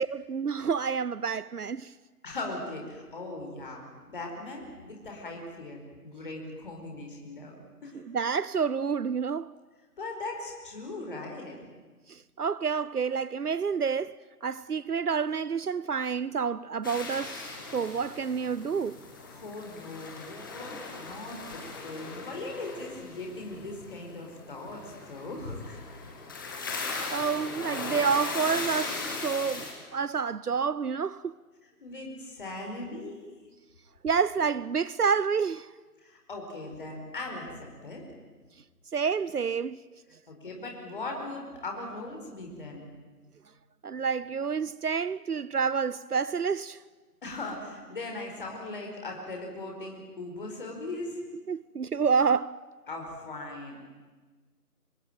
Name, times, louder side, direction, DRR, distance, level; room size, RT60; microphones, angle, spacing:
voice 1, 0.0-1.9 8.1-9.5 12.1-19.0 27.1-29.7 29.9-31.3 34.0-35.7 38.9-39.8 43.8-46.8 51.5-52.5, right 6 dB, 75° right, 0.8 m, -29 dB
voice 2, 2.2-7.5 7.8-8.0 10.0-11.6 19.3-25.8 31.8-33.3 36.0-38.0 40.3-42.9 47.2-51.2 52.9-53.8, left 2 dB, 35° left, 5.0 m, -39 dB
sound 1, 16.8-29.7, left 3 dB, 15° left, 2.0 m, -38 dB
25.5 x 19.5 x 9.1 m
figure-of-eight pair, 165°, 46 cm